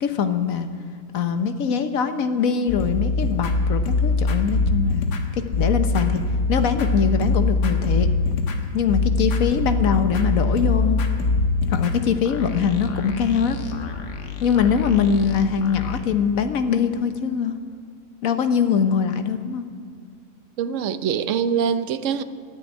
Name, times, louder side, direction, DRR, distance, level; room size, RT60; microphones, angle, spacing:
voice 1, 0.0-0.7 1.1-5.1 5.6-6.2 6.5-8.1 8.7-11.0 11.7-13.6 14.4-17.6 18.2-19.7, left 7 dB, 60° left, 1.3 m, -22 dB
sound 1, 2.7-16.0, left 3 dB, 80° left, 1.8 m, -23 dB
voice 2, 20.6-22.2, right 7 dB, 60° right, 0.9 m, -24 dB
13.5 x 8.1 x 9.5 m
omnidirectional pair, 1.8 m